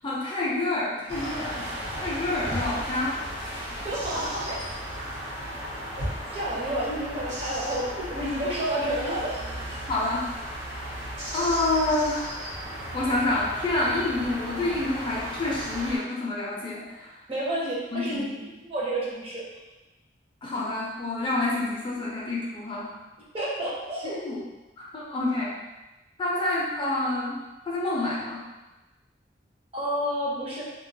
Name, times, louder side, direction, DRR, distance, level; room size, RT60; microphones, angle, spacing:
voice 1, 0.0-1.6 2.0-3.7 5.0-5.1 9.9-10.3 11.3-12.4 12.9-17.2 17.9-18.4 20.4-22.9 24.1-24.4 24.8-25.5 26.2-27.4 27.7-28.4, left 2 dB, 25° left, -5 dB, 0.4 m, -28 dB
sound 1, 1.1-16.0, equal, 70° right, 0.7 m, -35 dB
voice 2, 3.8-4.6 6.3-9.8 17.3-18.2 18.6-19.5 23.3-24.2 29.7-30.6, right 1 dB, 30° right, -5 dB, 0.5 m, -30 dB
2.3 x 2.2 x 2.6 m, 1.1 s
head